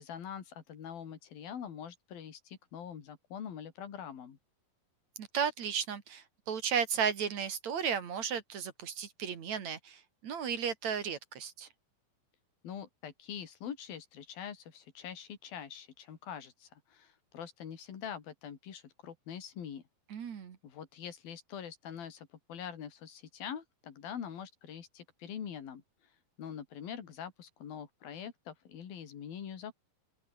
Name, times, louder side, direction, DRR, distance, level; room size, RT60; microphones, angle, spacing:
voice 1, 0.0-4.4 12.6-19.8 20.6-25.8 26.4-29.7, left 8 dB, 85° left, 4.7 m, -44 dB
voice 2, 5.2-11.7 20.1-20.6, right 7 dB, 55° right, 3.2 m, -34 dB
open air
omnidirectional pair, 4.1 m